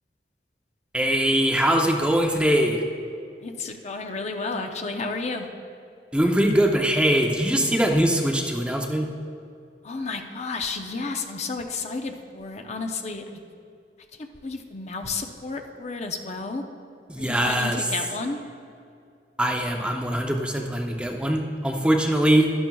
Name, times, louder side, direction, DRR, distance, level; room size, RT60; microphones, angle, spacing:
voice 1, 0.9-2.8 6.1-9.1 17.1-17.8 19.4-22.6, right 1 dB, 5° right, 2 dB, 0.6 m, -22 dB
voice 2, 3.4-5.5 9.8-13.2 14.1-16.6 17.2-18.4, left 3 dB, 40° left, 4 dB, 0.7 m, -32 dB
12.0 x 11.5 x 2.3 m, 2.3 s
head